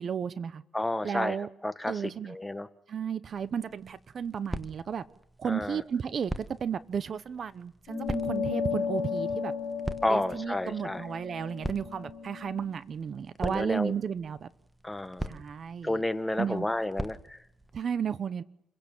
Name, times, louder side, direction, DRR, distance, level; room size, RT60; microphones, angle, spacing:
voice 1, 0.0-0.6 1.0-1.5 1.9-2.4 2.9-5.0 5.4-9.5 10.1-14.5 15.3-16.0 16.4-16.7 17.7-18.4, right 7 dB, 50° right, 16 dB, 0.8 m, -33 dB
voice 2, 0.7-1.4 1.6-2.7 5.5-5.8 10.0-11.0 13.4-13.9 14.8-15.4 15.8-17.4, left 1 dB, 10° left, 11 dB, 1.4 m, -31 dB
sound 1, 3.3-17.8, right 1 dB, 10° right, 1.4 m, -43 dB
sound 2, 7.9-12.7, left 6 dB, 45° left, 4.3 m, -34 dB
29.0 x 16.5 x 7.2 m, 0.80 s
cardioid pair, 90°, 0 cm